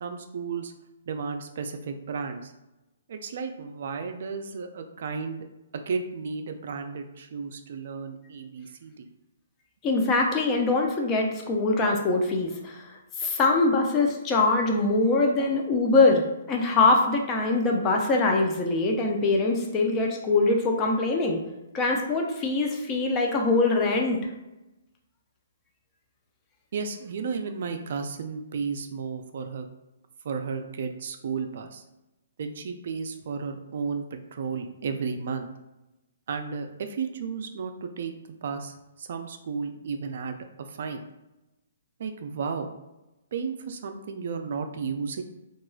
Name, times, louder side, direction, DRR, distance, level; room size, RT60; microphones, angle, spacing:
voice 1, 0.0-0.7 1.1-2.5 3.1-5.5 5.9-9.1 26.7-29.7 30.2-31.8 32.4-35.5 36.3-38.1 38.4-41.0 42.0-42.7 43.3-45.2, right 5 dB, 60° right, 6 dB, 0.3 m, -33 dB
voice 2, 9.8-12.9 13.2-21.4 21.7-24.2, left 3 dB, 20° left, 1 dB, 0.4 m, -23 dB
3.0 x 2.3 x 2.3 m, 0.97 s
hypercardioid pair, 145°, 0 cm